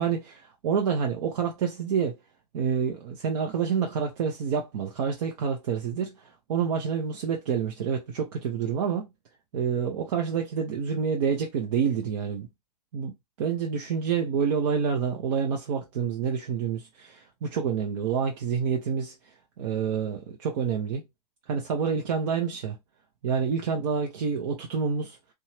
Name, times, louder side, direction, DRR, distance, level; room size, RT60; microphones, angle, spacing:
voice 1, 0.0-2.2 2.5-9.1 9.5-12.5 12.9-19.1 19.6-21.0 21.5-22.8 23.2-25.2, right 6 dB, 55° right, 0.7 m, -28 dB
2.7 x 2.3 x 3.0 m
hypercardioid pair, 120°, 21 cm